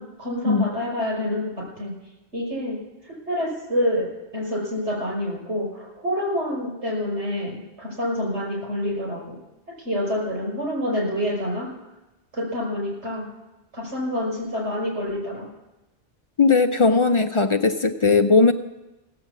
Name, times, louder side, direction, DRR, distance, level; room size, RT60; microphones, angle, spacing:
voice 1, 0.0-1.4 1.8-1.9 2.3-2.8 3.3-4.1 4.3-9.3 9.8-11.7 12.3-13.3 13.7-15.5, left 1 dB, 85° right, -3 dB, 6.1 m, -27 dB
voice 2, 16.4-18.5, left 4 dB, 40° left, 7 dB, 0.5 m, -18 dB
17.0 x 7.8 x 7.3 m, 1.0 s
omnidirectional pair, 1.1 m